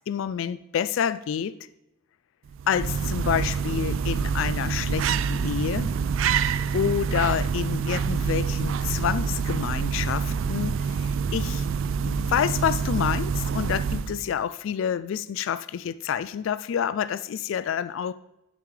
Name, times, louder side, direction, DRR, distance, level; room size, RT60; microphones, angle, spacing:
voice 1, 0.1-1.5 2.7-5.9 6.7-11.7 12.0-18.1, left 8 dB, 75° left, 16 dB, 0.3 m, -28 dB
sound 1, 2.5-14.3, right 6 dB, 80° right, 0.4 m, -26 dB
11.5 x 6.9 x 3.2 m, 0.90 s
head